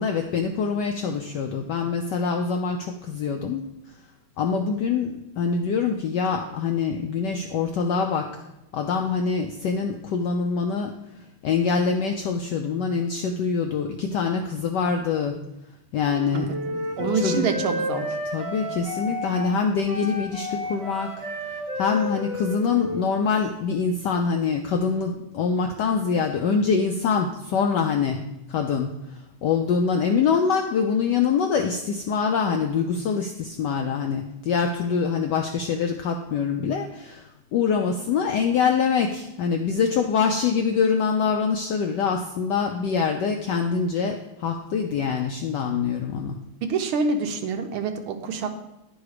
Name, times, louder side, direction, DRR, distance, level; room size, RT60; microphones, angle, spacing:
voice 1, 0.0-3.7 4.4-8.4 8.7-11.0 11.4-15.4 15.9-17.4 18.3-21.3 21.5-46.4, left 5 dB, 80° left, 4 dB, 0.9 m, -25 dB
Wind instrument woodwind instrument, 16.0-23.5, left 1 dB, 35° right, 0.5 m, -32 dB
voice 2, 16.3-18.2 46.6-48.6, right 4 dB, 80° right, 6 dB, 1.6 m, -27 dB
10.5 x 3.9 x 4.8 m, 0.91 s
omnidirectional pair, 2.4 m